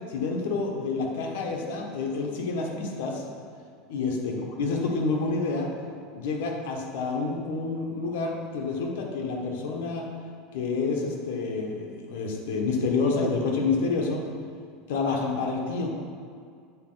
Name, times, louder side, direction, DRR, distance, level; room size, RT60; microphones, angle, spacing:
voice 1, 0.1-3.2 3.9-5.7 6.1-10.1 10.5-14.3 14.9-15.9, left 4 dB, 75° left, 0 dB, 1.3 m, -28 dB
8.4 x 4.3 x 4.0 m, 2.2 s
supercardioid pair, 160°, 0 cm